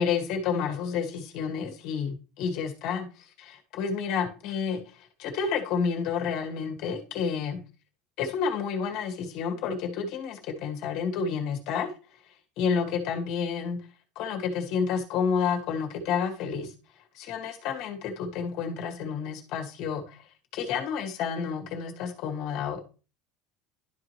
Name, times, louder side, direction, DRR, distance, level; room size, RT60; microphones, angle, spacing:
voice 1, 0.0-4.8 5.2-7.6 8.2-11.9 12.6-13.8 14.1-16.7 17.1-20.2 20.5-22.8, left 6 dB, 45° left, 5 dB, 1.7 m, -30 dB
11.5 x 5.0 x 3.0 m, 0.34 s
cardioid pair, 180°, 0 cm